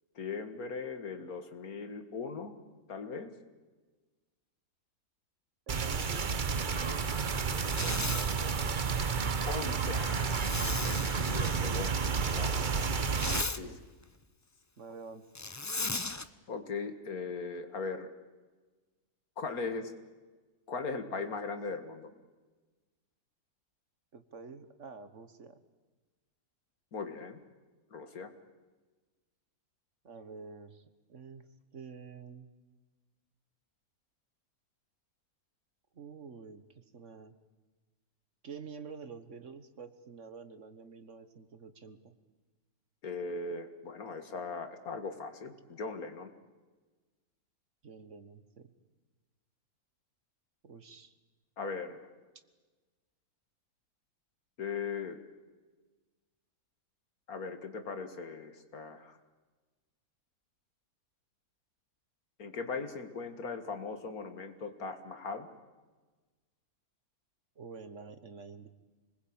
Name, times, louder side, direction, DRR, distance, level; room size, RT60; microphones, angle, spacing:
voice 1, 0.2-2.5 2.9-3.3 9.5-12.0 12.3-12.6 13.5-13.7 16.5-18.1 19.4-19.9 20.7-22.1 26.9-27.4 27.9-28.3 43.0-46.3 51.6-52.0 54.6-55.2 57.3-59.2 62.4-65.5, left 4 dB, 70° left, 8 dB, 2.3 m, -39 dB
sound 1, 5.7-13.4, right 5 dB, 35° right, 0.9 m, -31 dB
voice 2, 5.7-9.4 13.6-13.8 14.8-15.3 24.1-25.6 30.0-30.8 31.1-31.5 31.7-32.5 35.9-37.3 38.4-42.1 47.8-48.7 50.6-51.1 67.6-68.7, right 5 dB, 55° right, 11 dB, 1.6 m, -48 dB
Zipper (clothing), 7.6-8.3 10.3-11.6 12.9-13.6 15.3-16.2, left 3 dB, 20° left, 0.4 m, -36 dB
26.0 x 20.5 x 8.8 m, 1.3 s
omnidirectional pair, 1.6 m